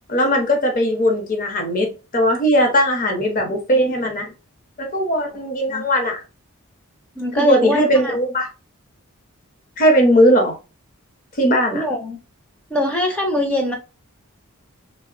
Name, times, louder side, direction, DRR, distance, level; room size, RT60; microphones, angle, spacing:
voice 1, 0.1-4.3 4.8-6.2 7.4-8.5 9.8-10.5 11.4-11.8, equal, 40° left, 0.7 m, -18 dB
voice 2, 7.2-8.2 11.7-12.2 12.7-13.8, left 1 dB, 5° left, 0.4 m, -22 dB
3.1 x 2.0 x 2.4 m
head